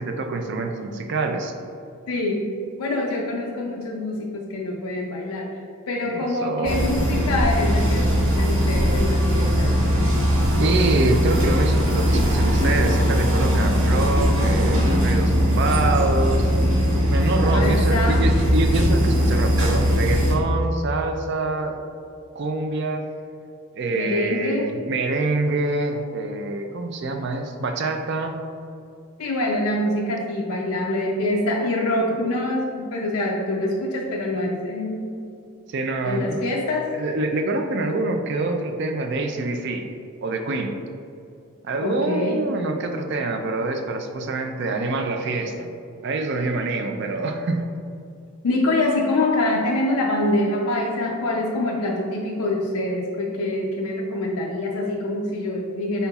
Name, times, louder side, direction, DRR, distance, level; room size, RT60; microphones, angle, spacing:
voice 1, 0.0-1.5 6.1-6.8 10.6-16.5 17.1-21.8 22.3-23.0 23.7-28.3 35.7-36.4 36.9-39.9 40.2-40.7 41.6-45.7 46.0-47.7, right 2 dB, 50° right, 4 dB, 0.4 m, -25 dB
voice 2, 2.1-2.4 2.8-5.5 5.9-9.8 17.4-18.3 23.9-24.8 29.2-35.2 36.0-36.9 41.8-42.5 48.4-56.1, left 2 dB, 90° left, -1 dB, 0.5 m, -25 dB
sound 1, 6.6-20.3, equal, 75° right, 1.3 m, -20 dB
5.6 x 3.9 x 2.3 m, 2.5 s
head